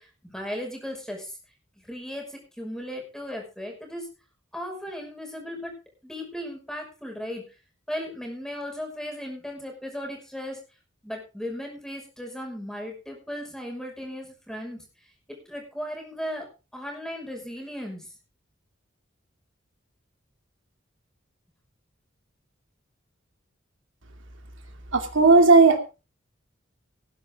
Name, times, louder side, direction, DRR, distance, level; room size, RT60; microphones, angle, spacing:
voice 1, 0.0-1.4 1.8-4.1 4.5-7.6 7.9-10.6 11.0-14.8 15.5-18.1, equal, 5° left, 1 dB, 5.8 m, -36 dB
voice 2, 24.9-25.8, right 3 dB, 80° right, 5 dB, 2.6 m, -15 dB
19.0 x 11.0 x 3.7 m, 0.31 s
head